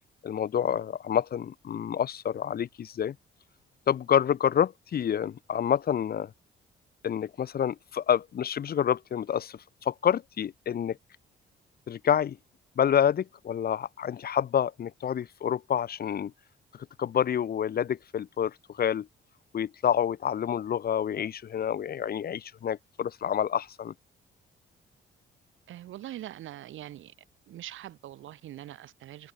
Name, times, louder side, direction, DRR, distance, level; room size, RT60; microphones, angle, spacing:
voice 1, 0.2-3.2 3.9-6.3 7.0-11.0 11.9-12.4 12.8-16.3 17.0-19.1 19.5-23.9, left 9 dB, 50° left, 0.9 m, -28 dB
voice 2, 25.7-27.1 27.5-29.3, right 13 dB, 80° right, 4.7 m, -43 dB
cardioid pair, 90°, 20 cm